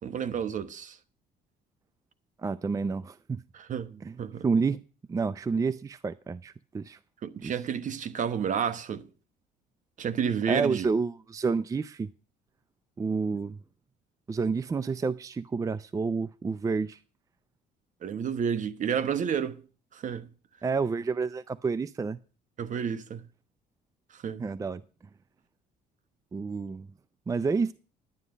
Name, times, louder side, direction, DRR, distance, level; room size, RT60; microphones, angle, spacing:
voice 1, 0.0-1.0 3.5-4.4 7.2-9.1 10.0-10.9 18.0-19.6 19.9-20.3 22.6-23.3 24.1-24.4, right 7 dB, 50° right, 1.2 m, -31 dB
voice 2, 2.4-3.4 4.0-4.2 4.4-4.8 5.1-7.0 7.4-7.5 10.5-12.1 13.0-13.6 14.3-17.0 20.6-22.2 24.4-24.8 26.3-26.9 27.3-27.7, right 4 dB, 20° right, 0.4 m, -29 dB
11.0 x 9.8 x 5.0 m
cardioid pair, 110°, 17 cm